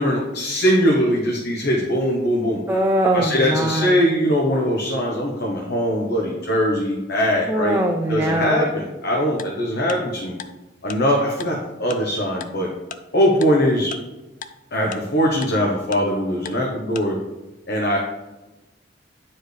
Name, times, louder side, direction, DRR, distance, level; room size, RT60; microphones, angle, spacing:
voice 1, 0.0-2.6 3.1-7.8 8.1-10.3 10.8-12.7 13.1-13.9 14.7-17.2 17.7-18.0, equal, 60° left, -2 dB, 1.0 m, -21 dB
voice 2, 2.7-4.0 7.5-8.7, right 1 dB, 10° right, 0 dB, 0.5 m, -21 dB
Tick-tock, 9.4-9.5 9.9-10.0 10.4-10.5 10.9-11.0 11.4-11.5 11.9-12.0 12.4-12.5 12.9-13.0 13.4-13.5 13.9-14.0 14.4-14.5 14.9-15.0 15.4-15.5 15.9-16.0 16.5-16.6 17.0-17.1, left 7 dB, 45° left, 0.4 m, -34 dB
9.6 x 4.5 x 3.3 m, 1.1 s
head